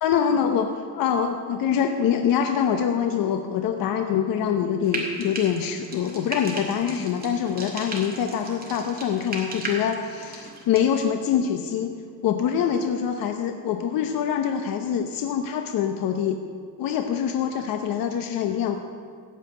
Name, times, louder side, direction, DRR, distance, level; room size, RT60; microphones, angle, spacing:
voice 1, 0.0-12.0 12.2-16.4 16.8-18.8, left 8 dB, 75° left, 6 dB, 0.8 m, -25 dB
Frying (food), 4.8-10.9, right 2 dB, 25° right, 2.1 m, -36 dB
15.0 x 5.7 x 8.9 m, 2.1 s
cardioid pair, 150°, 34 cm